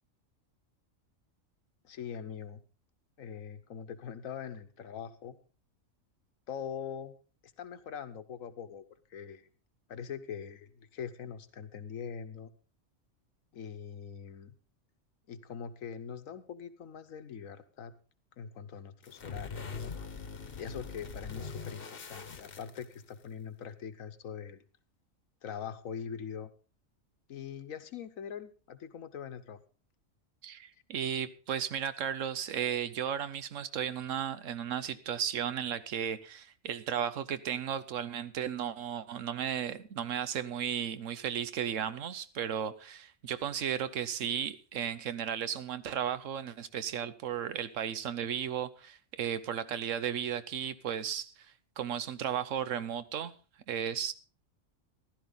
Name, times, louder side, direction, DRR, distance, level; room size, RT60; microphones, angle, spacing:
voice 1, 1.8-2.6 3.2-5.3 6.5-7.1 7.6-8.8 9.1-9.5 9.9-12.5 13.5-14.5 15.3-17.9 18.4-19.9 20.5-24.6 25.4-26.5 27.3-29.6, left 7 dB, 80° left, 1.4 m, -42 dB
sound 1, 19.0-23.3, left 5 dB, 45° left, 1.2 m, -42 dB
voice 2, 30.4-51.5 51.8-53.3 53.7-54.1, right 8 dB, 75° right, 1.1 m, -35 dB
15.0 x 12.0 x 3.9 m
omnidirectional pair, 1.4 m